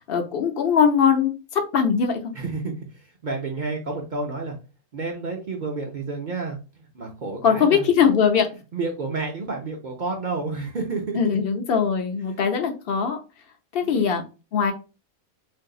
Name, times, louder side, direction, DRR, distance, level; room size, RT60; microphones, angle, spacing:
voice 1, 0.0-2.2 7.4-8.5 11.1-13.2 13.7-14.2 14.5-14.7, left 7 dB, 60° left, 5 dB, 0.7 m, -21 dB
voice 2, 2.3-4.6 4.9-8.1 8.7-11.4 12.3-12.4 13.8-14.3, right 3 dB, 55° right, 1 dB, 0.5 m, -30 dB
3.7 x 2.6 x 2.3 m, 0.31 s
omnidirectional pair, 1.3 m